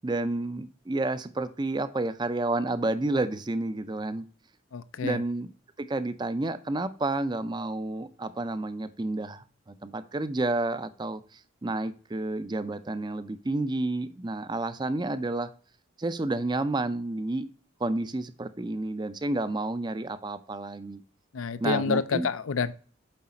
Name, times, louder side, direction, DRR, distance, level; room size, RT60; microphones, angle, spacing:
voice 1, 0.0-4.2 5.0-5.5 5.8-15.5 16.0-17.5 17.8-21.0 21.6-22.3, right 2 dB, 20° right, 13 dB, 0.4 m, -30 dB
voice 2, 4.7-5.2 21.3-22.7, left 5 dB, 80° left, 15 dB, 0.5 m, -28 dB
7.7 x 4.8 x 4.2 m, 0.41 s
head